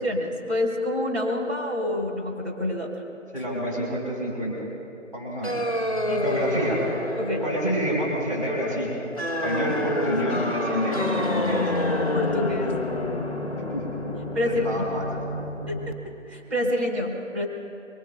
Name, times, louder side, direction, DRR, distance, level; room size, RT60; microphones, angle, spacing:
voice 1, 0.0-3.0 6.0-6.2 7.2-7.4 12.1-12.8 14.3-15.0 15.7-17.5, left 1 dB, 60° right, -3 dB, 4.0 m, -27 dB
voice 2, 3.3-4.7 5.1-5.6 6.2-6.8 7.4-9.0 9.2-11.7 13.7-13.8 14.4-15.0, equal, 30° right, -5 dB, 4.3 m, -28 dB
sound 1, 5.4-15.9, left 1 dB, 30° left, 0.8 m, -28 dB
24.0 x 23.5 x 2.3 m, 2.6 s
figure-of-eight pair, 180°, 37 cm